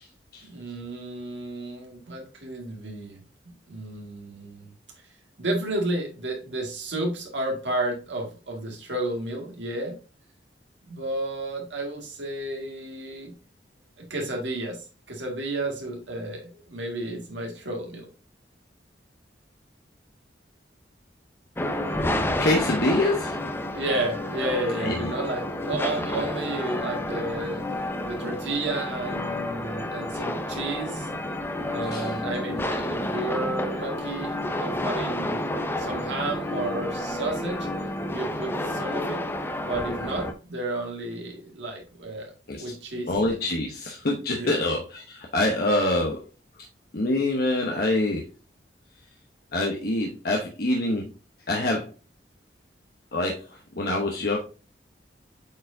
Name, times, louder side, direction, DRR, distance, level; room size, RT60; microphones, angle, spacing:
voice 1, 0.4-3.2 3.7-4.7 5.4-10.0 10.8-13.3 14.0-18.1 23.7-27.6 28.0-31.1 31.7-34.3 34.6-35.5 35.8-37.7 38.1-39.2 39.6-42.3 42.6-43.1 44.3-44.6, right 2 dB, 90° right, 1 dB, 2.1 m, -32 dB
sound 1, 21.6-40.3, left 1 dB, 15° left, 0.6 m, -30 dB
voice 2, 22.4-23.3 24.8-25.1 31.9-32.1 42.5-42.7 43.1-46.2 46.9-48.3 49.5-51.1 51.5-51.9 53.1-53.4 53.8-54.4, left 2 dB, 60° left, -1 dB, 1.0 m, -25 dB
8.2 x 4.6 x 2.7 m, 0.34 s
head